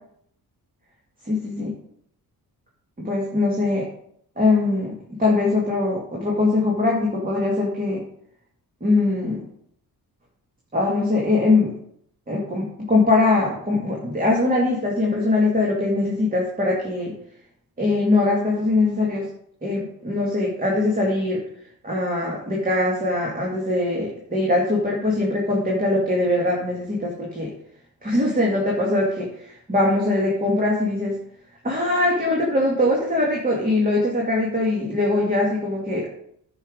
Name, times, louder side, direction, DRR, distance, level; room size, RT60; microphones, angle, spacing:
voice 1, 1.2-1.7 3.0-3.9 4.4-8.0 8.8-9.4 10.7-11.7 12.3-17.1 17.8-19.3 19.6-21.4 21.8-27.5 28.0-31.2 31.6-36.1, left 2 dB, 20° right, -2 dB, 2.2 m, -22 dB
10.0 x 5.6 x 5.2 m, 0.69 s
cardioid pair, 110°, 39 cm